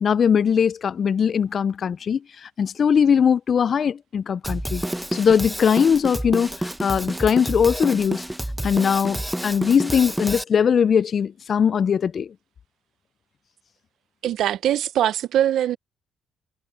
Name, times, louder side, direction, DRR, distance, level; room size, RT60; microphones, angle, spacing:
voice 1, 0.0-4.8 5.1-8.2 8.6-12.3, left 7 dB, 50° left, 0.3 m, -20 dB
Drum kit, 4.4-10.4, right 1 dB, 5° right, 0.9 m, -29 dB
voice 2, 14.2-15.8, right 11 dB, 75° right, 0.6 m, -22 dB
cardioid pair, 90°, 0 cm